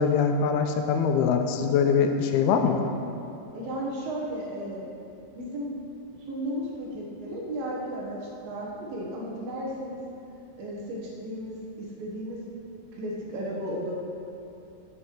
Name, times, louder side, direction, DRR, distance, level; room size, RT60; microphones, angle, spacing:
voice 1, 0.0-2.8, left 6 dB, 85° left, 5 dB, 2.7 m, -23 dB
voice 2, 3.5-4.9 5.3-5.7 6.2-10.0 10.6-12.4 12.9-13.9, equal, 70° right, -3 dB, 3.2 m, -34 dB
15.0 x 7.7 x 4.7 m, 2.7 s
omnidirectional pair, 4.4 m